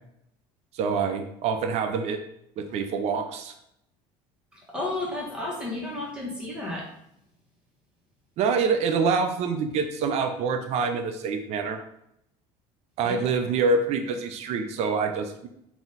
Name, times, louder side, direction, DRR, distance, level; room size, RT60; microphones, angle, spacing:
voice 1, 0.7-2.2 2.6-3.5 8.4-11.8 13.0-15.5, right 5 dB, 50° right, 5 dB, 0.6 m, -26 dB
voice 2, 4.7-6.9 13.0-13.1, left 2 dB, 5° right, -4 dB, 1.5 m, -32 dB
4.0 x 2.9 x 4.0 m, 0.75 s
cardioid pair, 135°, 14 cm